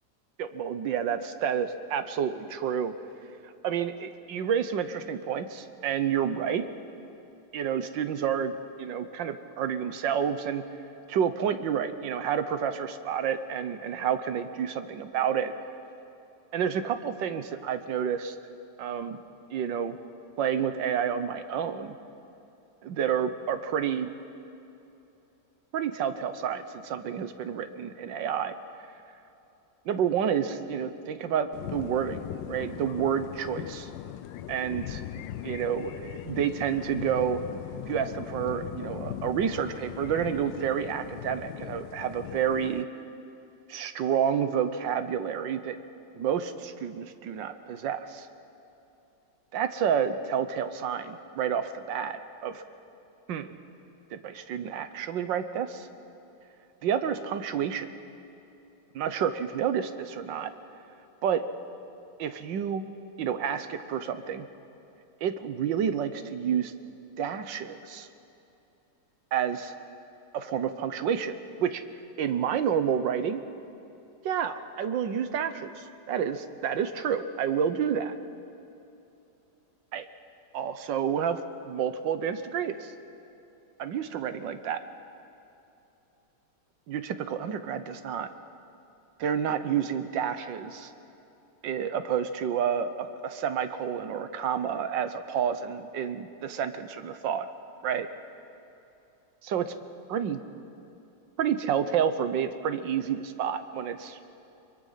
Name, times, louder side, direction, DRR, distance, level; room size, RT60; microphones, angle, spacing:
voice 1, 0.4-2.9 3.6-6.6 7.5-8.5 8.8-10.6 11.1-15.5 16.5-18.3 18.8-19.2 19.5-20.0 20.4-21.9 22.8-24.1 25.7-28.5 29.9-33.9 34.5-35.0 35.4-37.4 37.9-42.9 43.7-45.8 46.1-48.3 49.5-52.6 53.3-53.5 54.1-55.9 56.8-57.9 58.9-60.5 61.2-61.4 62.2-62.8 63.2-64.5 65.2-66.7 67.2-68.1 69.3-69.7 70.3-71.8 72.2-73.4 74.2-78.2 79.9-80.1 80.5-82.9 83.8-84.8 86.9-88.3 89.2-90.9 91.6-97.5 97.8-98.1 99.4-99.7 100.1-100.4 101.4-104.2, right 8 dB, 90° right, 10 dB, 1.7 m, -29 dB
sound 1, 31.5-42.8, left 12 dB, 85° left, 1.3 m, -39 dB
24.5 x 23.0 x 5.7 m, 2.9 s
omnidirectional pair, 1.9 m